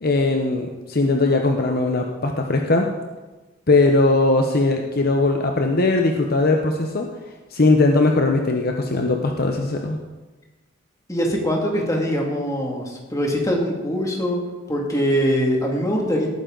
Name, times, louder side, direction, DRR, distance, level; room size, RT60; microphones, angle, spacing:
voice 1, 0.0-2.9 3.7-7.1 7.5-10.0, left 2 dB, 50° left, 3 dB, 0.9 m, -19 dB
voice 2, 11.1-14.4 14.7-16.3, equal, 15° left, -1 dB, 2.4 m, -22 dB
18.0 x 9.2 x 4.0 m, 1.2 s
head